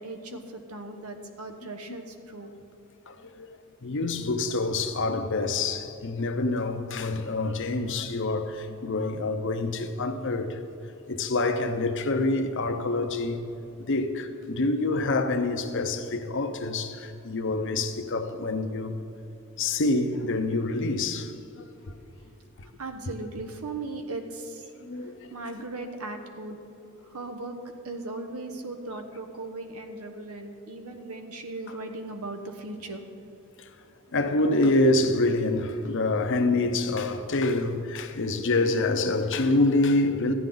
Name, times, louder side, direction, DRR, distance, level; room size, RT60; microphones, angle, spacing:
voice 1, 0.0-2.5 22.7-24.7 25.0-26.6 27.0-27.6 27.8-33.0, right 2 dB, 90° right, 1.1 m, -38 dB
voice 2, 3.1-10.6 11.1-13.5 13.8-19.0 19.6-21.9 22.6-22.7 24.8-25.3 33.6-33.7 34.1-40.3, left 2 dB, 60° left, 0.8 m, -26 dB
13.5 x 9.5 x 3.9 m
head